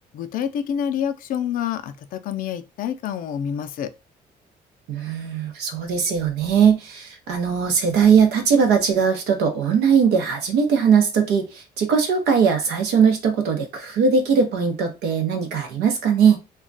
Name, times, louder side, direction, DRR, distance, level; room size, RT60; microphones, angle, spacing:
voice 1, 0.1-3.9, left 9 dB, 55° left, 0.4 m, -27 dB
voice 2, 4.9-16.4, right 6 dB, 80° right, 0.7 m, -20 dB
2.3 x 2.2 x 3.8 m
cardioid pair, 110°, 17 cm